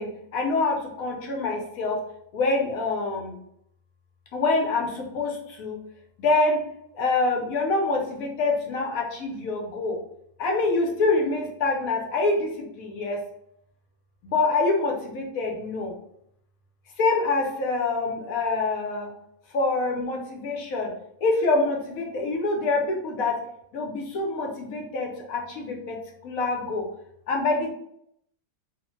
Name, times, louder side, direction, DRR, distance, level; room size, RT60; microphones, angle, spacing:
voice 1, 0.0-2.0 2.3-3.3 4.3-5.8 6.2-6.6 6.9-10.0 10.4-13.2 14.2-15.9 17.0-19.1 19.5-20.9 21.2-23.4 23.7-26.0 26.2-26.8 27.3-27.7, left 3 dB, 70° left, 0 dB, 1.0 m, -25 dB
2.8 x 2.1 x 3.0 m, 0.73 s
omnidirectional pair, 1.6 m